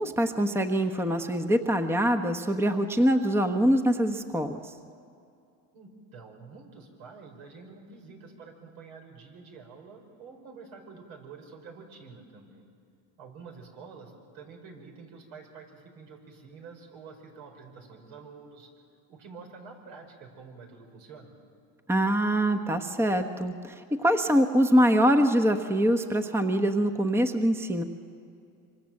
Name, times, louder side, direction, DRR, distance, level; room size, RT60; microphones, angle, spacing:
voice 1, 0.0-4.6 21.9-27.8, equal, 5° right, 7 dB, 1.0 m, -24 dB
voice 2, 5.7-12.7 13.2-18.7 19.1-21.4, right 4 dB, 75° right, 3 dB, 5.3 m, -48 dB
26.0 x 25.0 x 7.7 m, 2.5 s
supercardioid pair, 120°, 41 cm